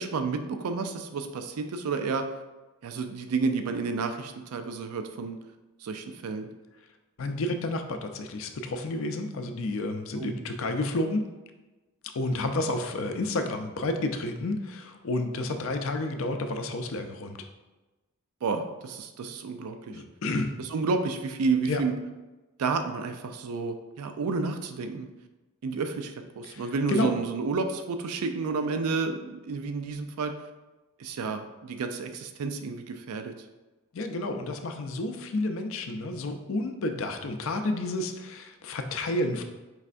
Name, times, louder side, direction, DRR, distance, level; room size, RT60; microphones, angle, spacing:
voice 1, 0.0-2.2 2.8-5.4 5.8-6.5 10.2-10.4 18.4-20.0 20.6-21.9 22.6-25.1 25.6-30.3 31.0-33.3, right 4 dB, 85° right, 7 dB, 0.4 m, -30 dB
voice 2, 7.2-11.3 12.1-17.4 19.9-20.5 21.7-21.8 26.5-27.1 33.9-39.4, left 2 dB, 65° left, 6 dB, 0.4 m, -30 dB
4.7 x 3.2 x 2.5 m, 1.1 s
head